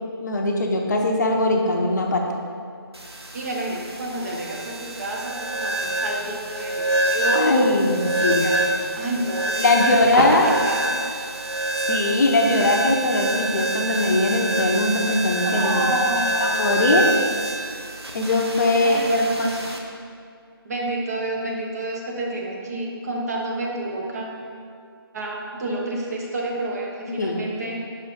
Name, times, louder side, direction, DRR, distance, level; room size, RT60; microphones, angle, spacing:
voice 1, 0.2-2.2 7.3-8.5 9.6-10.5 11.9-15.9 16.4-17.1 18.1-19.6 27.1-27.4, left 2 dB, 45° left, 1 dB, 0.7 m, -21 dB
sound 1, 2.9-19.8, right 1 dB, 90° right, 0.9 m, -26 dB
voice 2, 3.3-7.6 8.2-8.6 9.0-11.0 15.4-16.8 18.8-19.3 20.6-24.3 25.1-27.8, right 1 dB, 40° right, -2 dB, 1.1 m, -29 dB
5.8 x 4.6 x 5.3 m, 2.3 s
figure-of-eight pair, 155°, 13 cm